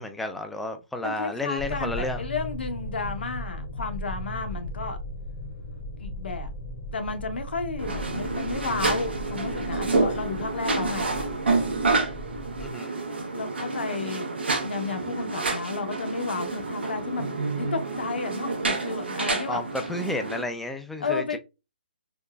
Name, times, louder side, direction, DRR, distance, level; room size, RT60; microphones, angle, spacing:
voice 1, 0.0-2.2 12.6-12.9 19.5-21.4, left 2 dB, ahead, 0.3 m, -31 dB
voice 2, 1.0-5.0 6.0-6.5 6.9-11.1 13.3-14.3 14.6-19.6 21.0-21.4, left 4 dB, 75° left, 0.8 m, -32 dB
sound 1, 1.6-12.7, equal, 35° left, 0.8 m, -37 dB
sound 2, 7.8-20.4, right 3 dB, 85° right, 0.8 m, -29 dB
3.8 x 2.1 x 2.3 m
hypercardioid pair, 150°, 6 cm